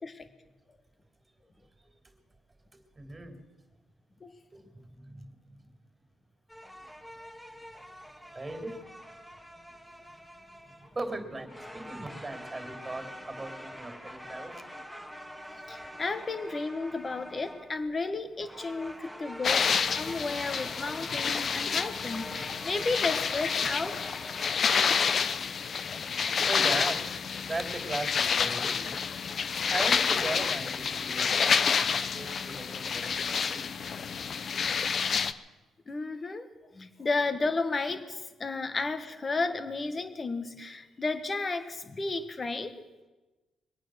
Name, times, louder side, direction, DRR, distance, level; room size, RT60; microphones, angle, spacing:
voice 1, 2.7-3.4 4.5-5.7 8.1-9.4 10.6-14.6 24.5-24.9 26.5-29.0 29.7-33.8, right 2 dB, 20° right, 4 dB, 3.2 m, -39 dB
sound 1, 6.5-24.6, equal, 5° left, 1.9 m, -45 dB
voice 2, 15.7-24.0 29.6-29.7 31.4-31.5 35.9-36.5 36.7-42.7, left 3 dB, 30° left, 9 dB, 1.5 m, -33 dB
sound 2, 19.4-35.3, left 6 dB, 50° left, 0.7 m, -29 dB
23.0 x 9.0 x 6.4 m, 1.2 s
cardioid pair, 90°, 0 cm